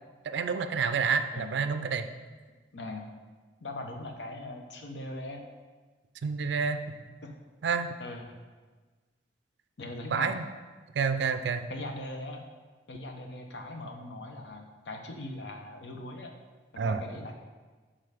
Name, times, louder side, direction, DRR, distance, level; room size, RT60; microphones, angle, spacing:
voice 1, 0.3-2.1 6.2-6.8 7.6-7.9 10.1-10.5 10.9-11.7 16.8-17.0, right 5 dB, 75° right, 9 dB, 0.4 m, -28 dB
voice 2, 2.7-3.1 3.6-5.4 7.2-7.3 8.0-8.4 9.8-10.4 11.7-12.4 12.9-16.3 16.7-17.4, left 2 dB, 85° left, 4 dB, 0.8 m, -40 dB
6.6 x 3.7 x 5.0 m, 1.4 s
head